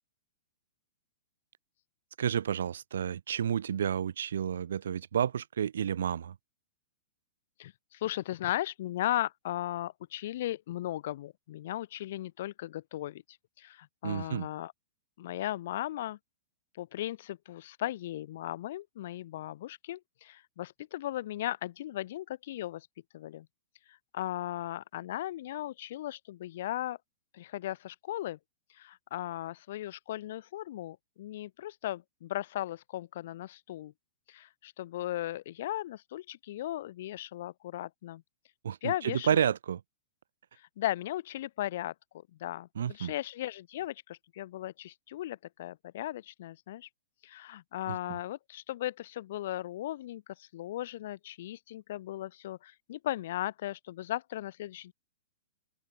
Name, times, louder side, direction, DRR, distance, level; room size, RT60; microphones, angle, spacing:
voice 1, 2.2-6.4 14.0-14.5 38.6-39.8 42.7-43.1 47.9-48.2, right 8 dB, 85° right, 1.3 m, -31 dB
voice 2, 7.6-14.7 15.2-16.2 16.7-22.9 23.1-23.5 23.9-27.0 27.3-28.4 28.7-33.9 34.3-38.2 38.8-39.4 40.6-46.9 47.2-54.9, left 14 dB, 50° left, 4.2 m, -37 dB
open air
hypercardioid pair, 170°, 0 cm